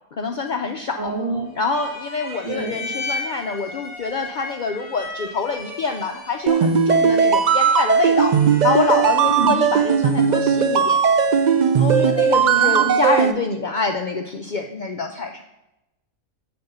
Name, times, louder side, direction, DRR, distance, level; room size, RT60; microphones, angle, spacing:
voice 1, 0.1-1.1 1.6-8.3 8.6-11.0 11.8-15.4, left 4 dB, 80° left, 4 dB, 0.4 m, -25 dB
voice 2, 1.0-1.5 2.4-2.7 9.2-9.5 12.5-12.9, right 3 dB, 40° right, -6 dB, 2.6 m, -26 dB
sound 1, 1.5-9.6, left 2 dB, 20° left, 2.8 m, -36 dB
sound 2, 6.5-13.3, right 7 dB, 65° right, 0.4 m, -17 dB
7.0 x 4.3 x 6.6 m, 0.93 s
omnidirectional pair, 1.4 m